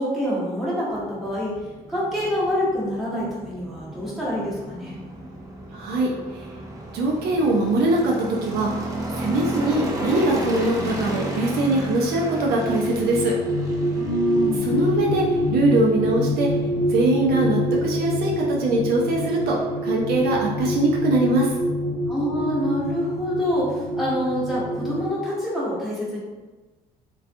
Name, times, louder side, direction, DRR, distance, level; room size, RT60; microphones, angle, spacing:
voice 1, 0.0-1.6 1.9-5.0 14.0-14.7 22.1-26.2, equal, ahead, -8 dB, 1.0 m, -26 dB
sound 1, 0.9-20.3, right 1 dB, 20° right, 0.4 m, -34 dB
voice 2, 5.7-6.5 6.9-8.1 8.4-8.7 9.2-13.3 14.6-16.5 16.9-21.5, right 2 dB, 70° right, -2 dB, 0.5 m, -22 dB
sound 2, 12.3-25.1, left 1 dB, 60° left, 0.4 m, -26 dB
2.4 x 2.3 x 2.6 m, 1.2 s
cardioid pair, 110°, 17 cm